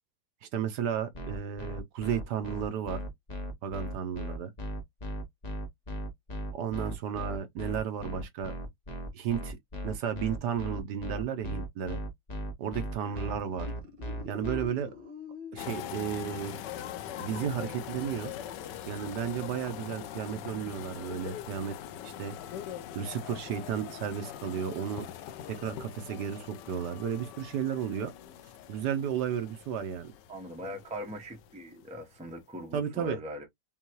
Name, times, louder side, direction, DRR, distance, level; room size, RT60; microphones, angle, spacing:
voice 1, 0.4-3.0 3.6-4.5 6.5-8.5 9.1-9.6 9.8-12.0 12.6-13.7 14.2-14.9 15.5-16.6 17.2-18.3 18.8-21.8 22.0-22.3 22.9-25.1 25.5-28.1 28.7-30.1 32.7-33.2, right 8 dB, 70° right, 1.3 m, -33 dB
sound 1, 1.1-14.7, equal, 30° left, 0.9 m, -37 dB
sound 2, 13.3-15.9 19.3-20.0, left 6 dB, 85° right, 2.0 m, -46 dB
sound 3, 15.6-31.9 32.1-32.4, left 10 dB, 75° left, 1.2 m, -42 dB
voice 2, 30.3-33.5, equal, 5° right, 0.7 m, -41 dB
5.5 x 2.3 x 3.0 m
omnidirectional pair, 2.0 m